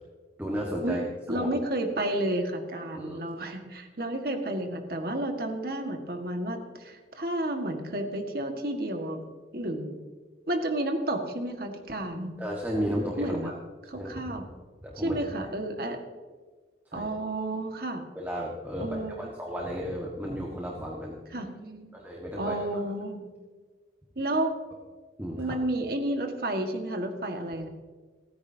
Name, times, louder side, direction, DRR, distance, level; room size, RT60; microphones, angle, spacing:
voice 1, 0.4-1.0 1.3-1.5 2.9-3.3 12.4-13.5 13.9-14.4 14.8-15.5 16.9-17.1 18.1-21.2 21.9-22.6 25.2-25.5, equal, 10° right, -3 dB, 1.6 m, -34 dB
voice 2, 1.3-9.2 9.5-10.0 10.5-12.4 13.2-13.5 13.9-14.5 15.0-16.0 16.9-18.0 18.8-19.3 21.3-21.9 22.4-23.4 24.2-24.5 25.4-27.7, right 1 dB, 55° right, 4 dB, 1.8 m, -31 dB
29.0 x 10.0 x 2.8 m, 1.4 s
head